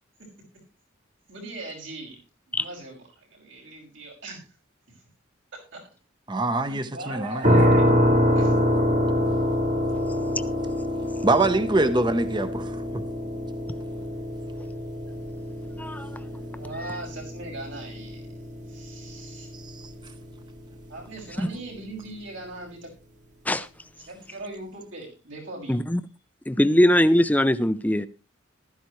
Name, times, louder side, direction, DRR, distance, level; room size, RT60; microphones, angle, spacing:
voice 1, 1.3-2.2 2.5-3.0 3.3-4.4 5.7-5.8 6.6-7.9 8.4-8.5 16.6-18.2 18.7-19.5 20.9-22.9 24.1-25.8, right 2 dB, 75° right, 6.1 m, -39 dB
voice 2, 6.3-7.5 11.2-12.7, right 2 dB, 25° right, 0.9 m, -23 dB
sound 1, 7.4-20.3, equal, 40° right, 1.5 m, -25 dB
voice 3, 15.8-16.2 16.8-17.0 21.4-21.5 23.5-23.7 25.7-26.0 26.5-28.1, equal, 10° left, 0.6 m, -21 dB
15.0 x 13.0 x 3.2 m
head